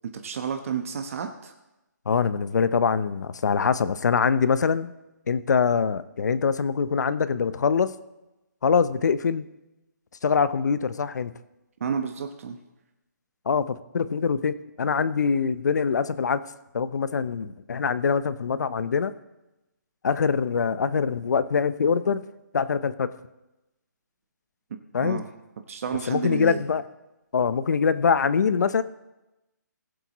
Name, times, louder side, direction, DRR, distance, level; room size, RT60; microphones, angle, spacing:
voice 1, 0.1-1.5 11.8-12.6 25.0-25.3 25.7-26.6, right 7 dB, 45° right, 6 dB, 1.0 m, -31 dB
voice 2, 2.1-4.9 5.3-7.9 8.6-9.4 10.2-11.3 13.5-16.4 16.7-19.1 20.0-22.2 22.5-23.1 24.9-25.2 26.1-26.8 27.3-28.8, left 6 dB, 65° left, 14 dB, 0.7 m, -24 dB
20.5 x 7.8 x 3.1 m, 0.98 s
hypercardioid pair, 160°, 10 cm